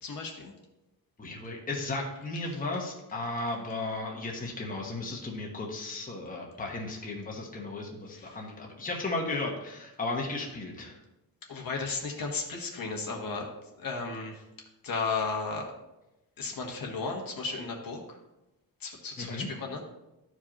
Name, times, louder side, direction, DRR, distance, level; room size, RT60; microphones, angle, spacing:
voice 1, 0.0-0.5 8.1-8.4 11.5-13.5 13.8-14.4 14.8-15.7 16.4-18.2 18.8-19.8, left 4 dB, 55° left, 1 dB, 1.3 m, -34 dB
voice 2, 1.2-11.0 19.2-19.5, left 2 dB, 20° left, -1 dB, 1.1 m, -35 dB
12.5 x 4.9 x 2.9 m, 0.94 s
wide cardioid pair, 150°, 40 cm